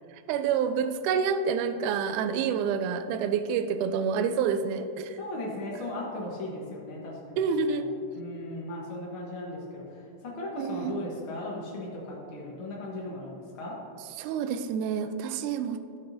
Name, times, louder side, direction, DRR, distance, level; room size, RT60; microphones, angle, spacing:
voice 1, 0.1-5.2 7.4-7.8 10.6-11.0 14.2-16.0, right 6 dB, 90° right, 9 dB, 1.7 m, -28 dB
voice 2, 5.2-7.6 8.1-13.8, left 1 dB, 70° left, -4 dB, 1.2 m, -37 dB
16.0 x 5.9 x 2.6 m, 2.5 s
omnidirectional pair, 4.1 m